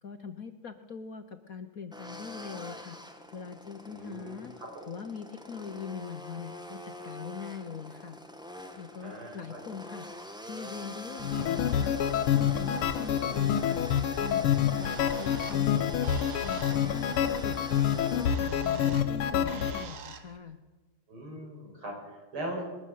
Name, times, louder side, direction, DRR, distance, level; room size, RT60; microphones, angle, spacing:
voice 1, 0.0-3.0 3.3-4.5 4.9-8.2 8.7-10.1 10.4-12.0 12.3-13.9 14.2-15.9 16.4-17.6 17.9-20.6, left 6 dB, 50° left, 9 dB, 1.2 m, -42 dB
sound 1, 1.9-18.3, left 1 dB, ahead, 1.6 m, -45 dB
voice 2, 3.9-4.9 9.0-9.6 21.1-22.6, right 1 dB, 75° right, 0 dB, 8.0 m, -40 dB
sound 2, 11.2-19.8, left 9 dB, 80° left, 1.9 m, -27 dB
Bird, 14.5-20.4, right 7 dB, 50° right, 1.6 m, -48 dB
21.5 x 13.0 x 9.4 m, 1.2 s
omnidirectional pair, 2.4 m